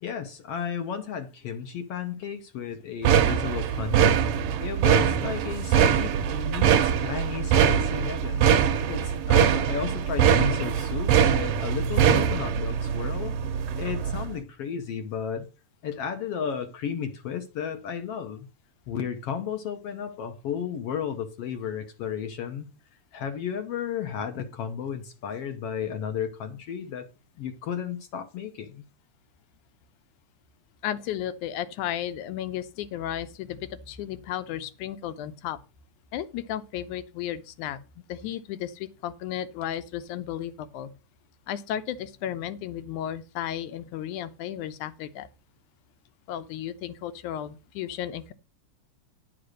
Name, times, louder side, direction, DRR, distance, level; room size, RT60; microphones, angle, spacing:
voice 1, 0.0-8.5 8.9-13.4 13.8-15.5 15.8-18.5 18.9-22.7 23.1-27.1 27.4-28.8, left 8 dB, 65° left, 1.5 m, -33 dB
sound 1, 3.0-14.3, right 8 dB, 70° right, 1.5 m, -23 dB
voice 2, 30.8-35.6 36.1-40.9 41.5-45.3 46.3-48.3, left 11 dB, 80° left, 2.2 m, -34 dB
10.5 x 5.0 x 6.4 m
omnidirectional pair, 3.6 m